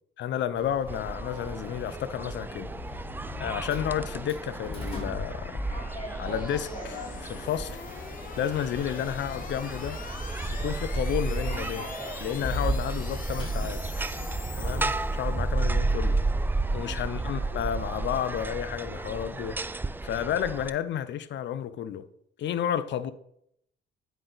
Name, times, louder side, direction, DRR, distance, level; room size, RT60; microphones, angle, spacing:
voice 1, 0.2-3.0 3.4-5.6 6.2-7.8 8.3-10.0 10.5-11.9 12.2-13.8 14.6-16.2 16.7-19.6 20.0-22.0 22.4-23.1, left 9 dB, 65° left, 0.6 m, -31 dB
Sliding door, 0.6-20.2, equal, 30° left, 3.6 m, -40 dB
sound 1, 0.9-20.7, right 3 dB, 10° right, 0.3 m, -32 dB
sound 2, 2.5-15.6, left 5 dB, 45° left, 1.1 m, -45 dB
9.9 x 4.9 x 3.9 m
cardioid pair, 90°, 20 cm